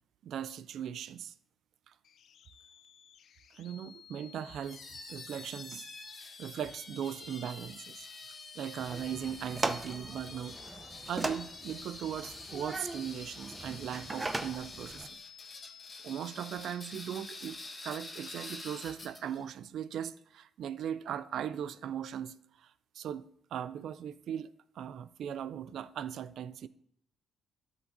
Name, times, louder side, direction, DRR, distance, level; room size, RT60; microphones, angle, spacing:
voice 1, 0.2-1.3 1.9-2.0 3.5-4.8 5.1-5.9 6.4-8.1 8.6-10.6 11.1-15.2 16.0-26.7, right 9 dB, 70° right, 0.4 m, -39 dB
sound 1, 2.0-18.8, left 9 dB, 70° left, 0.4 m, -55 dB
sound 2, 4.6-19.4, left 2 dB, 30° left, 2.1 m, -48 dB
sound 3, 8.8-15.1, right 2 dB, 20° right, 0.6 m, -39 dB
13.0 x 7.3 x 2.7 m
cardioid pair, 90°, 0 cm